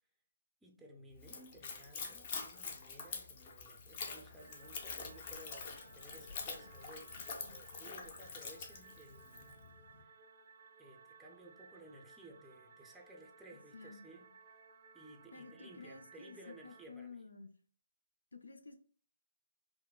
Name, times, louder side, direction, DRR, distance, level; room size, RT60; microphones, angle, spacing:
voice 1, 0.6-9.5 10.0-10.2 10.8-14.6 14.9-17.2, right 1 dB, 5° right, 0.5 m, -57 dB
Splash splatter / Trickle dribble, 1.2-9.5, left 5 dB, 35° left, 0.7 m, -46 dB
sound 1, 3.7-10.0, left 4 dB, 50° left, 1.0 m, -61 dB
sound 2, 4.4-16.9, right 5 dB, 50° right, 0.5 m, -60 dB
voice 2, 15.3-17.5 18.3-18.8, left 4 dB, 80° left, 0.5 m, -52 dB
5.6 x 2.0 x 2.3 m
figure-of-eight pair, 145°, 0 cm